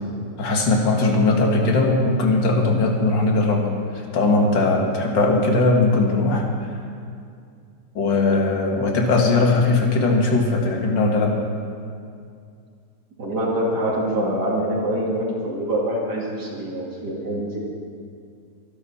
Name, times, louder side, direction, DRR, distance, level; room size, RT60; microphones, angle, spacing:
voice 1, 0.4-6.5 8.0-11.4, left 3 dB, 75° left, 1 dB, 2.4 m, -19 dB
voice 2, 13.2-17.6, right 1 dB, 60° right, -3 dB, 3.1 m, -25 dB
23.0 x 11.5 x 4.3 m, 2.3 s
omnidirectional pair, 2.0 m